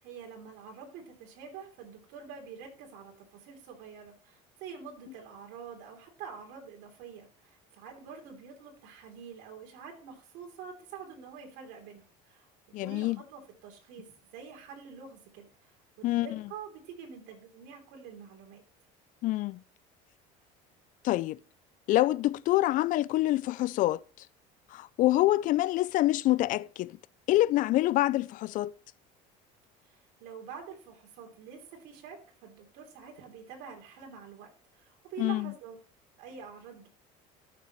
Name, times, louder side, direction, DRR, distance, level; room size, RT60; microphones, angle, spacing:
voice 1, 0.0-12.5 12.8-18.6 29.8-35.7 36.2-36.9, right 6 dB, 70° right, 3.2 m, -47 dB
voice 2, 12.7-13.2 16.0-16.4 19.2-19.6 21.0-21.4 21.9-24.3 24.7-27.0 27.3-28.7 35.2-35.5, left 16 dB, 50° left, 0.4 m, -26 dB
13.5 x 6.7 x 3.1 m
cardioid pair, 120°, 17 cm